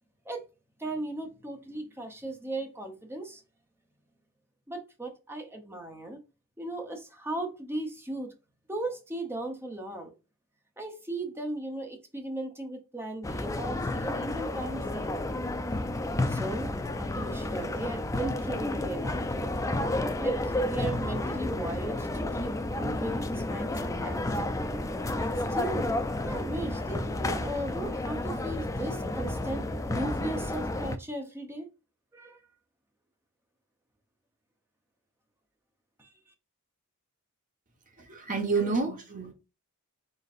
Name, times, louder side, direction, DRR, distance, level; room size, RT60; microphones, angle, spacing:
voice 1, 0.8-3.4 4.7-6.2 6.6-8.3 8.7-10.1 10.8-15.2 16.3-16.7 17.0-19.5 20.2-22.1 22.3-24.2 25.2-25.9 26.3-31.7 32.1-32.4 36.0-36.1, right 1 dB, 10° right, 0.8 m, -37 dB
sound 1, 13.2-31.0, left 1 dB, 15° left, 0.4 m, -31 dB
voice 2, 38.0-39.3, right 4 dB, 35° right, 1.2 m, -29 dB
4.1 x 3.9 x 2.6 m
head